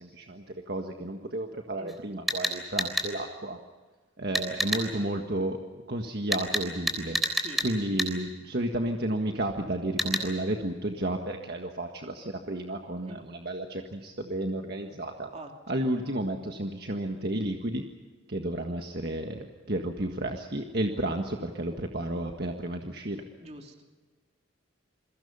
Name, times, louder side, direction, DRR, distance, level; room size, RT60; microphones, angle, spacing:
voice 1, 0.0-3.6 4.2-5.6 5.9-7.2 7.6-15.3 15.7-17.8 18.3-23.2, right 1 dB, 50° right, 3 dB, 1.7 m, -32 dB
sound 1, 1.9-2.0 2.3-3.1 4.3-4.8 6.3-7.7 8.0-8.1 10.0-10.2, equal, ahead, 3.5 m, -28 dB
voice 2, 7.3-7.6 13.1-13.2 15.3-15.5 15.8-15.9 23.4-23.8, right 1 dB, 30° right, 3 dB, 3.1 m, -45 dB
29.0 x 22.5 x 5.6 m, 1.4 s
head